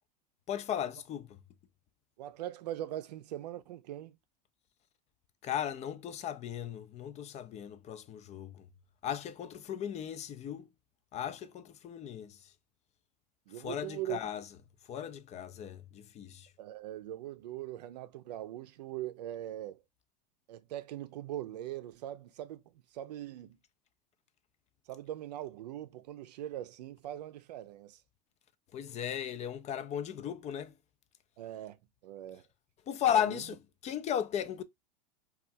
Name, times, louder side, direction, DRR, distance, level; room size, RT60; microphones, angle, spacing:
voice 1, 0.5-1.4 5.4-8.7 9.0-10.7 11.1-12.4 13.6-14.6 14.9-16.5 28.7-30.7 32.9-34.6, left 9 dB, 30° left, 0.4 m, -36 dB
voice 2, 2.2-4.2 13.5-14.2 16.6-19.8 20.5-22.6 22.9-23.6 24.9-28.0 31.4-31.8 32.0-32.4 33.1-33.4, right 13 dB, 75° right, 0.5 m, -41 dB
4.3 x 2.4 x 2.5 m
hypercardioid pair, 90°, 21 cm